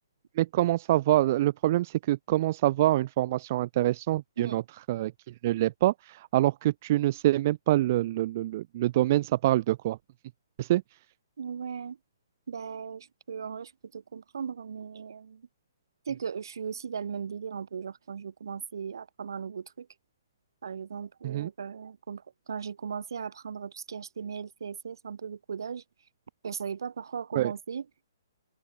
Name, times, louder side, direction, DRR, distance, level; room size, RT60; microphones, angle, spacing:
voice 1, 0.4-4.6 4.9-5.1 5.4-10.0 10.6-10.8 21.2-21.5 27.3-27.5, right 15 dB, 40° right, 0.5 m, -25 dB
voice 2, 11.4-12.0 12.5-15.5 16.1-19.9 20.6-25.8 26.4-27.9, right 6 dB, 70° right, 3.9 m, -37 dB
open air
hypercardioid pair, 150°, 2 cm